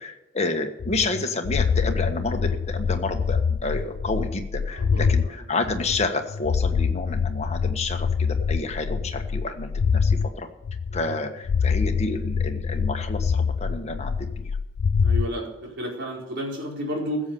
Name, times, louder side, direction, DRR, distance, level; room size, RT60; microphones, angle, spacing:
voice 1, 0.0-10.5 10.9-14.5, left 3 dB, 35° left, 4 dB, 1.4 m, -30 dB
sound 1, 0.8-5.3 5.6-10.3 10.6-11.2 11.4-15.3, left 6 dB, 65° left, 0.4 m, -25 dB
voice 2, 4.7-5.4 10.9-11.2 15.0-17.2, equal, 60° right, -2 dB, 4.7 m, -32 dB
15.5 x 7.3 x 7.0 m, 0.90 s
head